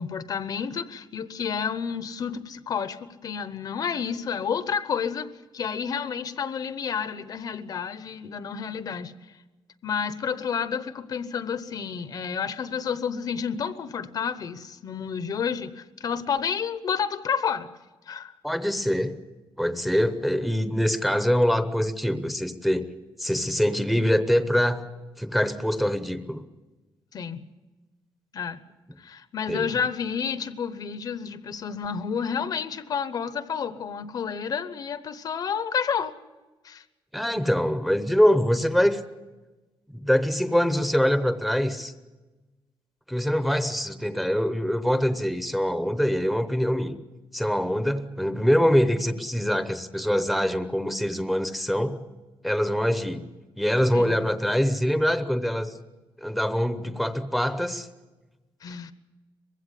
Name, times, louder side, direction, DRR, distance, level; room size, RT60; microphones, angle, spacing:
voice 1, 0.0-5.3 5.5-9.1 9.8-17.7 18.1-18.4 27.1-27.4 28.3-28.6 29.0-36.1 36.6-36.8 53.9-54.1 58.6-58.9, left 7 dB, 45° left, 0.9 m, -30 dB
voice 2, 18.4-19.1 19.6-22.9 23.2-24.9 25.2-26.4 29.5-29.7 37.1-39.0 39.9-41.9 43.1-47.0 47.3-52.0 52.4-53.2 53.6-55.7 56.2-57.9, equal, ahead, 0.8 m, -24 dB
21.5 x 16.0 x 9.9 m
wide cardioid pair, 180°, 9 cm